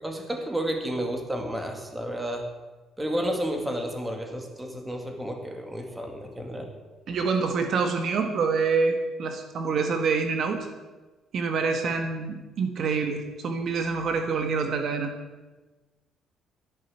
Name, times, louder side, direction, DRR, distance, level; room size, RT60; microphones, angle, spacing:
voice 1, 0.0-2.5 3.0-6.7, equal, 10° right, 4 dB, 2.2 m, -31 dB
voice 2, 7.1-10.7 11.3-15.1, right 4 dB, 50° right, 5 dB, 1.5 m, -26 dB
13.5 x 10.5 x 8.0 m, 1.2 s
cardioid pair, 145°, 0 cm